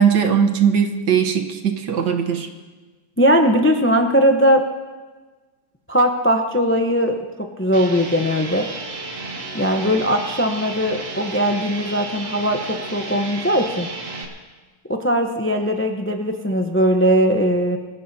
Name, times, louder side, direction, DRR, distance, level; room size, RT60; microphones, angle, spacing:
voice 1, 0.0-2.5, right 7 dB, 70° right, 5 dB, 1.7 m, -19 dB
voice 2, 3.2-4.6 5.9-7.1 7.6-8.6 9.5-13.9 14.9-17.8, equal, 20° left, 4 dB, 0.3 m, -19 dB
sound 1, 7.7-14.3, right 3 dB, 45° right, 1.8 m, -33 dB
24.0 x 15.0 x 2.8 m, 1.3 s
omnidirectional pair, 1.9 m